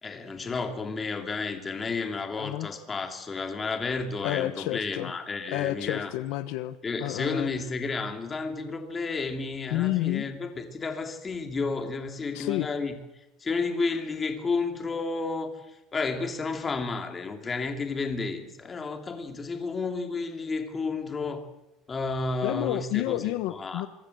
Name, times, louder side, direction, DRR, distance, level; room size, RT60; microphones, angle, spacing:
voice 1, 0.0-6.1 6.8-12.9 13.4-15.5 15.9-21.5 21.9-23.2 23.5-23.9, left 4 dB, 15° left, 5 dB, 2.8 m, -31 dB
voice 2, 2.4-2.7 4.2-5.1 5.5-7.5 9.7-10.2 12.3-12.7 22.4-23.9, left 16 dB, 70° left, 12 dB, 1.2 m, -30 dB
25.5 x 24.5 x 8.0 m, 0.93 s
cardioid pair, 175°, 0 cm